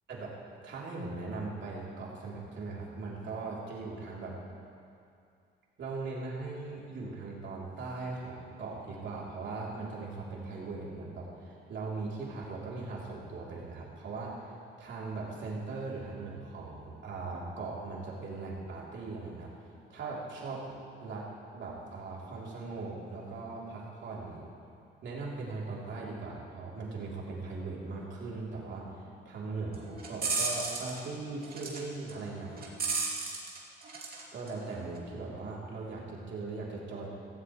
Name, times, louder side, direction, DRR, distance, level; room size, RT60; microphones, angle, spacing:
voice 1, 0.6-4.4 5.8-14.5 14.8-19.5 19.9-21.3 21.5-24.4 25.0-32.7 34.3-37.1, right 3 dB, 65° right, -4 dB, 3.3 m, -39 dB
sound 1, 29.7-31.0 31.4-31.8 32.1-34.2 34.5-35.0, right 4 dB, 50° right, 2.7 m, -34 dB
16.0 x 15.0 x 3.2 m, 2.5 s
cardioid pair, 90°, 20 cm